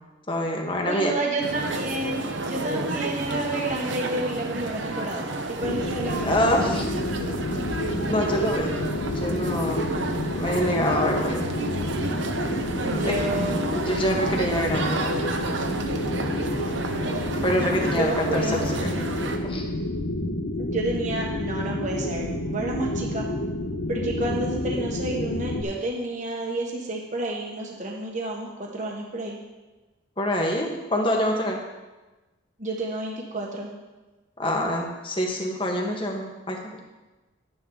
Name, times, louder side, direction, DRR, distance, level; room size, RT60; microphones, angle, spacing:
voice 1, 0.3-1.1 6.2-6.8 8.1-8.8 9.1-9.9 10.3-11.5 13.0-13.2 13.7-15.1 17.4-19.0 19.4-19.6 30.2-31.6 34.4-36.7, equal, 25° left, 1 dB, 1.5 m, -26 dB
voice 2, 0.9-7.0 12.8-13.7 17.9-18.6 20.6-23.2 23.9-29.4 32.6-33.7, right 2 dB, 40° right, -2 dB, 1.3 m, -30 dB
sound 1, 1.4-19.4, right 2 dB, 65° right, 1.0 m, -31 dB
sound 2, 5.6-25.6, left 1 dB, 80° left, 1.1 m, -29 dB
11.0 x 9.7 x 3.9 m, 1.1 s
head